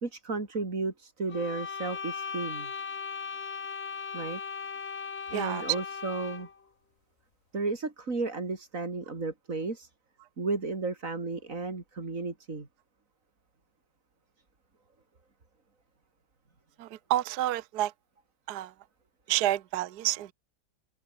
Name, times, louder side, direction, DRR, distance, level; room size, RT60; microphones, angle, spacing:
voice 1, 0.0-2.7 4.1-4.4 5.3-6.5 7.5-9.9 10.4-12.7, right 3 dB, 40° right, 3.7 m, -33 dB
sound 1, 1.3-6.6, left 5 dB, 35° left, 1.6 m, -38 dB
voice 2, 5.3-5.8 16.8-17.9 18.5-18.7 19.3-20.3, right 14 dB, 65° right, 1.2 m, -29 dB
omnidirectional pair, 2.1 m